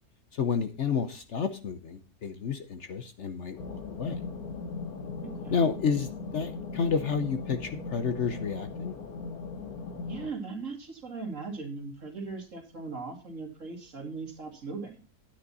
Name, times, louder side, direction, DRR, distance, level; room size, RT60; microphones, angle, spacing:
voice 1, 0.4-4.2 5.5-8.9, left 6 dB, 55° left, 8 dB, 1.0 m, -30 dB
sound 1, 3.6-10.3, left 4 dB, 70° left, 1.5 m, -38 dB
voice 2, 5.2-5.6 10.1-15.0, right 4 dB, 55° right, 3 dB, 2.6 m, -39 dB
9.8 x 9.4 x 4.1 m, 0.33 s
omnidirectional pair, 1.6 m